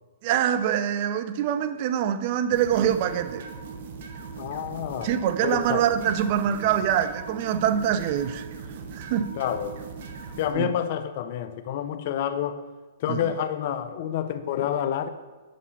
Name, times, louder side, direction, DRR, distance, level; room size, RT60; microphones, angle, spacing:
voice 1, 0.2-3.4 5.0-8.5 8.9-9.3 10.5-10.7 13.1-13.3, right 9 dB, 45° right, 11 dB, 0.5 m, -24 dB
sound 1, 2.5-10.5, right 5 dB, 60° right, 0.8 m, -40 dB
voice 2, 4.4-5.1 5.4-5.8 9.4-9.8 10.4-12.6 13.0-15.1, left 10 dB, 50° left, 10 dB, 0.5 m, -28 dB
5.5 x 5.1 x 5.4 m, 1.3 s
hypercardioid pair, 145°, 0 cm